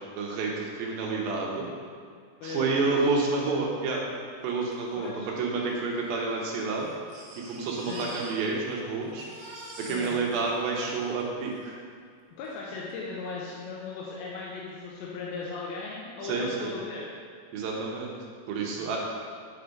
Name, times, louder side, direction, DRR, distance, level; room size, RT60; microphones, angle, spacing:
voice 1, 0.0-1.7 2.4-4.0 4.4-6.9 7.4-9.3 9.8-11.8 16.2-16.8 17.5-18.1 18.5-19.0, right 3 dB, 75° right, -2 dB, 2.3 m, -29 dB
voice 2, 2.4-2.9 3.3-3.5 5.0-5.3 7.8-8.1 9.9-10.2 12.4-17.1 18.8-19.0, left 4 dB, 90° left, -5 dB, 2.9 m, -38 dB
Crying sobbing, 4.7-4.8 5.0-5.1 5.9-8.8 9.0-11.6 12.4-12.5 12.9-13.0, right 1 dB, 55° right, 1.8 m, -46 dB
8.7 x 3.3 x 5.1 m, 2.1 s
omnidirectional pair, 5.1 m